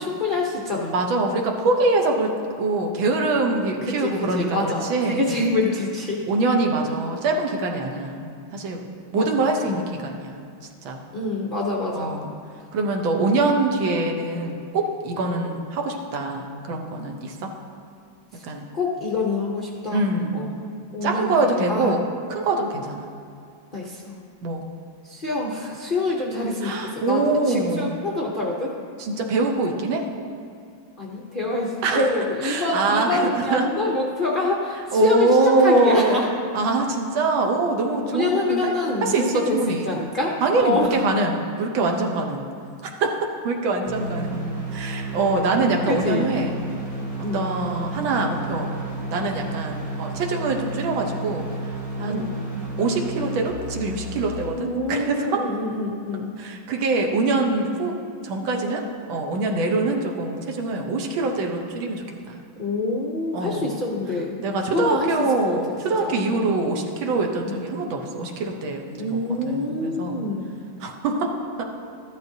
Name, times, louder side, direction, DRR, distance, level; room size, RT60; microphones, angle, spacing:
voice 1, 0.0-1.0 3.8-6.2 9.1-9.9 11.1-12.2 18.3-18.4 18.7-20.1 20.3-21.9 23.7-24.1 25.0-28.7 31.0-36.3 38.1-41.0 45.9-46.3 47.2-47.5 52.1-52.3 54.5-56.3 62.6-64.4 64.6-65.6 66.0-66.5 67.4-67.6 69.0-70.5, left 3 dB, 70° left, -3 dB, 0.5 m, -26 dB
voice 2, 0.9-5.2 6.3-8.9 9.1-10.4 10.9-11.0 12.0-12.3 12.7-17.5 18.4-18.7 19.9-20.5 21.0-22.0 22.3-23.1 24.4-24.6 26.6-28.0 29.0-30.1 31.8-32.1 32.4-33.6 34.9-36.2 36.5-38.7 39.0-39.9 40.4-42.5 43.0-43.2 43.4-44.4 44.7-46.5 47.3-48.7 49.1-51.5 52.0-52.2 52.8-55.4 56.4-57.9 58.2-62.4 63.3-63.7 64.4-69.1 69.5-70.2 70.8-71.7, right 3 dB, 75° right, 2 dB, 1.7 m, -24 dB
sound 1, 43.8-54.5, right 2 dB, 20° right, 1.2 m, -32 dB
13.0 x 11.0 x 2.7 m, 2.3 s
omnidirectional pair, 2.2 m